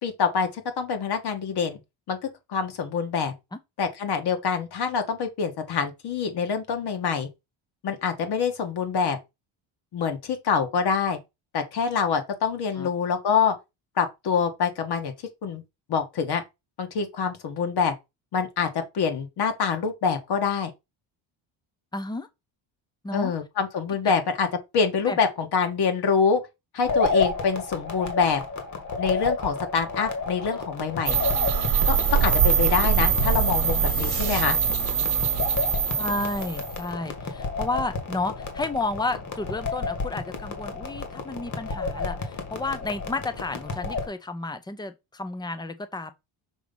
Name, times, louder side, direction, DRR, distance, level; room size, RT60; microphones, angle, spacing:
voice 1, 0.0-1.8 2.1-2.2 2.5-3.3 3.8-7.3 7.8-9.2 9.9-11.2 11.5-13.5 14.0-15.1 15.4-15.6 15.9-16.4 16.8-17.9 18.3-20.7 23.1-24.5 24.7-26.4 26.7-28.4 29.0-31.2 31.9-34.6, left 6 dB, 50° left, 1.6 m, -25 dB
voice 2, 21.9-22.3 23.0-23.3 25.1-25.2 36.0-46.1, left 2 dB, 10° left, 0.6 m, -32 dB
sound 1, 26.8-44.1, left 3 dB, 35° left, 1.7 m, -31 dB
sound 2, 31.1-36.8, right 7 dB, 50° right, 1.0 m, -23 dB
6.2 x 3.0 x 5.3 m
cardioid pair, 145°, 48 cm